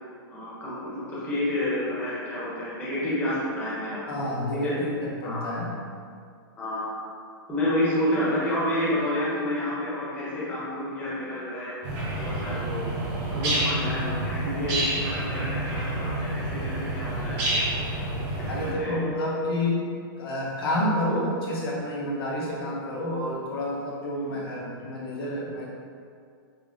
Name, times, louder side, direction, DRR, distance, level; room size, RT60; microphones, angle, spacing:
voice 1, 0.3-4.0 4.5-4.7 5.2-5.6 6.6-7.1 7.5-11.7 12.2-13.0 13.3-17.4 18.4-19.0, left 1 dB, 15° left, -9 dB, 0.8 m, -29 dB
voice 2, 4.1-5.7 18.5-19.8 20.2-25.7, left 1 dB, 75° left, -3 dB, 0.8 m, -29 dB
sound 1, 11.8-18.7, right 1 dB, 25° right, 0.6 m, -28 dB
5.3 x 2.0 x 2.5 m, 2.2 s
supercardioid pair, 165°, 12 cm